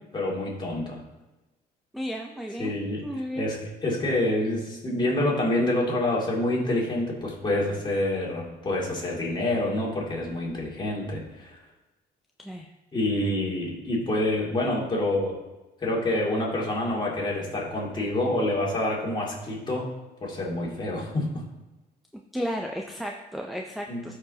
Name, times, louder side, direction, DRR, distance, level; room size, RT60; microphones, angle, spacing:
voice 1, 0.1-1.0 2.6-3.1 3.4-11.6 12.9-15.4 15.8-19.9 20.2-21.4 23.9-24.0, left 1 dB, 25° left, -3 dB, 2.4 m, -27 dB
voice 2, 1.9-2.7 3.0-3.5 12.4-12.7 22.3-24.2, equal, ahead, 2 dB, 0.5 m, -33 dB
14.0 x 4.8 x 2.8 m, 1.1 s
cardioid pair, 110°, 17 cm